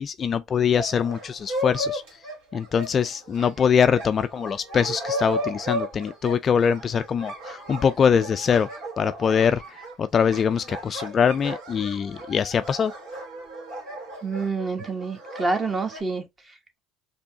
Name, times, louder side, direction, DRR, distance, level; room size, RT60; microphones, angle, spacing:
voice 1, 0.0-2.0 2.5-8.7 9.0-12.9, left 7 dB, 35° left, 0.3 m, -23 dB
sound 1, 0.7-16.0, equal, 75° right, 2.0 m, -35 dB
voice 2, 14.2-16.8, right 3 dB, 20° right, 1.0 m, -28 dB
4.4 x 2.7 x 2.8 m
supercardioid pair, 110°, 0 cm